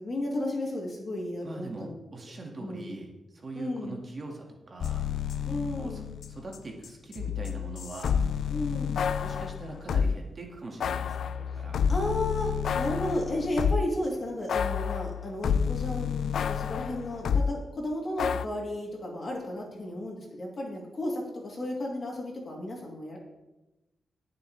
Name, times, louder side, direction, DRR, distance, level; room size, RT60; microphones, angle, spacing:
voice 1, 0.0-1.9 2.6-2.9 3.5-4.0 5.5-6.1 8.5-9.0 11.9-23.2, left 1 dB, 35° left, -2 dB, 3.0 m, -33 dB
voice 2, 1.4-5.0 5.8-8.2 9.2-11.8, right 2 dB, 35° right, 0 dB, 1.8 m, -42 dB
sound 1, 4.8-6.6 6.8-10.2 10.8-14.0 14.5-17.5 18.2-18.5, left 7 dB, 80° left, 0.3 m, -29 dB
20.5 x 7.1 x 3.3 m, 0.98 s
wide cardioid pair, 165°, 0 cm